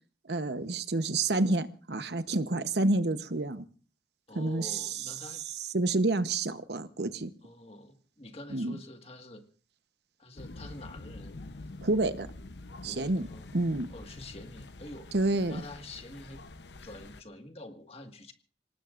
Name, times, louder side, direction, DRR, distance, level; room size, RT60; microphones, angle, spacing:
voice 1, 0.3-3.6 4.3-4.9 5.7-7.3 8.5-8.8 11.8-12.3 12.8-13.3 13.5-13.9 15.1-15.6, right 2 dB, 70° right, 12 dB, 1.0 m, -28 dB
voice 2, 4.3-5.4 7.4-9.4 10.2-11.4 12.8-13.6 13.9-15.1 15.5-16.4 16.8-18.3, left 1 dB, 35° left, 6 dB, 1.8 m, -47 dB
sound 1, 10.4-17.2, left 2 dB, 80° left, 0.9 m, -46 dB
26.5 x 18.5 x 2.5 m, 0.39 s
head